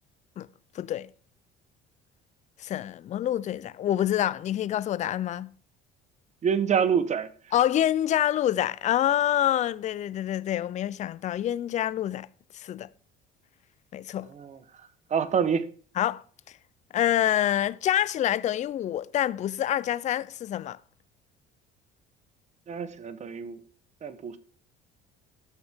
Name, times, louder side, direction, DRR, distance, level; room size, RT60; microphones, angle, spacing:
voice 1, 0.7-1.1 2.6-5.5 7.5-12.3 12.5-12.9 13.9-14.3 16.0-16.2 16.9-20.8, left 11 dB, 40° left, 0.4 m, -26 dB
voice 2, 6.4-7.3 14.3-14.6 15.1-15.6 22.7-23.6 24.0-24.4, right 7 dB, 35° right, 1.1 m, -26 dB
13.5 x 6.4 x 3.6 m
cardioid pair, 105°, 19 cm